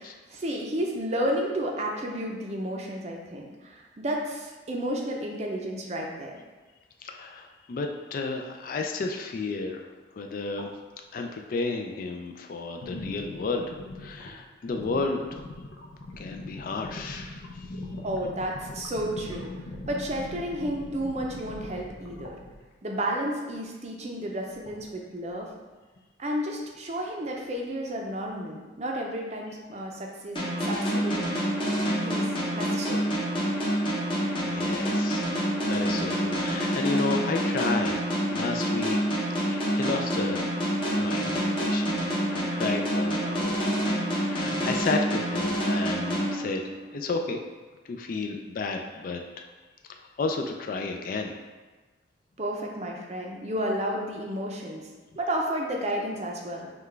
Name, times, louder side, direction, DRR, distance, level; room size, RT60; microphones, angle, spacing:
voice 1, 0.0-6.4 18.0-19.5 19.9-22.4 22.8-25.5 26.2-31.3 32.0-33.1 52.4-54.9 55.2-56.7, equal, 35° right, 0 dB, 0.5 m, -32 dB
voice 2, 7.0-9.8 10.2-10.7 11.1-15.3 16.2-17.5 34.5-38.0 38.3-39.0 39.5-40.4 40.9-43.6 44.1-47.4 47.9-49.5 49.9-51.3, left 3 dB, 45° left, 4 dB, 0.3 m, -32 dB
sound 1, 10.6-10.7 12.8-22.6 24.5-25.1 26.0-26.1 26.6-26.8, left 2 dB, 85° left, 0.6 m, -41 dB
sound 2, 30.4-47.0, equal, 25° left, 0.8 m, -27 dB
5.7 x 2.3 x 3.2 m, 1.3 s
head